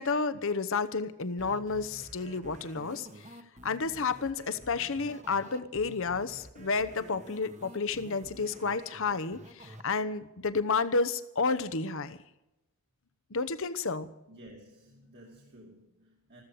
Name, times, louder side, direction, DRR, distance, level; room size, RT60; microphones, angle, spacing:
voice 1, 0.0-3.3 3.6-12.2 13.3-14.1, left 4 dB, 65° left, 14 dB, 0.9 m, -31 dB
sound 1, 1.4-9.8, right 1 dB, 35° right, 1.5 m, -50 dB
voice 2, 14.3-16.4, right 1 dB, 50° right, -2 dB, 2.6 m, -53 dB
15.0 x 14.0 x 6.5 m, 0.93 s
head